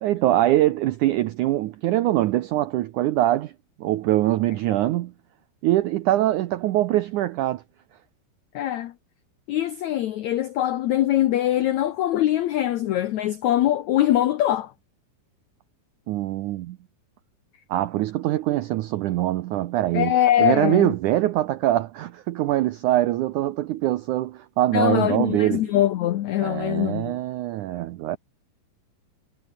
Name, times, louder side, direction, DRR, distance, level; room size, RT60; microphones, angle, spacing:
voice 1, 0.0-3.5 3.8-5.1 5.6-7.6 16.1-16.8 17.7-20.1 20.4-25.6 26.4-28.2, right 14 dB, 85° right, 1.8 m, -23 dB
voice 2, 8.5-8.9 9.5-14.7 19.9-20.9 24.7-27.2, left 12 dB, 85° left, 1.6 m, -22 dB
omnidirectional pair, 4.5 m